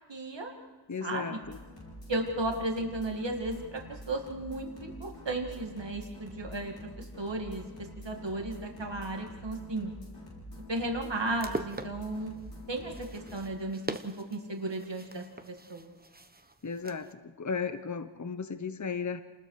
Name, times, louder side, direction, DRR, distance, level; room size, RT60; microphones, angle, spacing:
voice 1, 0.1-0.5 1.0-1.4 2.1-9.9 10.7-12.4 12.7-15.9, right 2 dB, 85° right, 2 dB, 2.1 m, -35 dB
voice 2, 0.9-1.6 16.6-17.1 17.4-19.2, left 5 dB, 45° left, 10 dB, 0.8 m, -35 dB
sound 1, 1.4-13.4, equal, 80° left, 6.8 m, -47 dB
sound 2, 11.2-17.1, right 2 dB, 20° right, 1.1 m, -43 dB
28.5 x 20.5 x 4.8 m, 1.2 s
wide cardioid pair, 60°, 42 cm